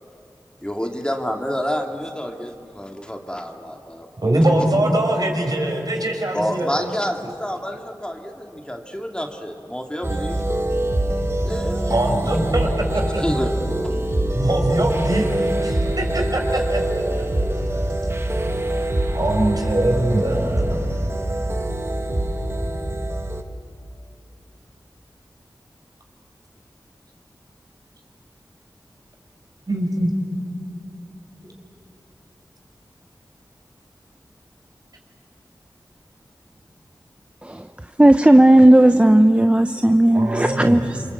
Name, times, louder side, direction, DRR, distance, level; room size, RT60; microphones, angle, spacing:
voice 1, 0.6-4.1 6.3-10.4 11.4-12.0 13.2-13.5, equal, 10° left, 2.2 m, -28 dB
voice 2, 4.2-6.9 11.9-13.2 14.3-16.8 17.7-17.8 19.1-20.8 29.7-30.1 40.1-40.9, right 1 dB, 55° right, 5.3 m, -22 dB
sound 1, 10.0-23.4, right 1 dB, 35° right, 1.7 m, -24 dB
voice 3, 38.0-41.0, right 1 dB, 15° right, 0.8 m, -13 dB
27.5 x 23.5 x 8.3 m
cardioid pair, 40°, 8 cm